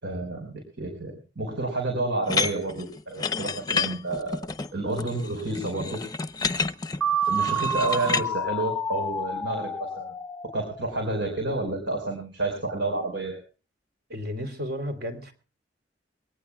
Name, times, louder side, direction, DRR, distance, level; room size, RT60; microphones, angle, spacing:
voice 1, 0.0-4.4 4.7-6.0 7.3-10.1 10.5-13.4, right 2 dB, 80° right, 2 dB, 4.8 m, -30 dB
sound 1, 2.3-8.3, left 4 dB, 20° left, 0.7 m, -30 dB
sound 2, 7.0-10.9, right 2 dB, 5° left, 1.1 m, -28 dB
voice 2, 14.1-15.3, equal, 60° right, 6 dB, 3.2 m, -33 dB
23.5 x 18.5 x 2.3 m, 0.36 s
head